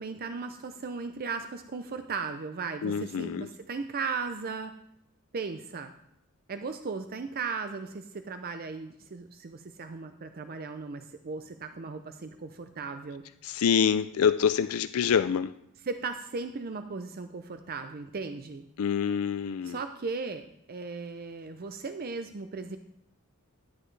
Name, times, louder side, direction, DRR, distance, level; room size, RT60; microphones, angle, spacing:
voice 1, 0.0-4.7 5.3-5.9 6.5-13.2 15.9-18.6 19.6-22.8, right 4 dB, 40° right, 8 dB, 0.5 m, -37 dB
voice 2, 2.8-3.5 13.4-15.5 18.8-19.8, left 7 dB, 65° left, 13 dB, 0.4 m, -26 dB
12.0 x 9.7 x 3.3 m, 0.78 s
head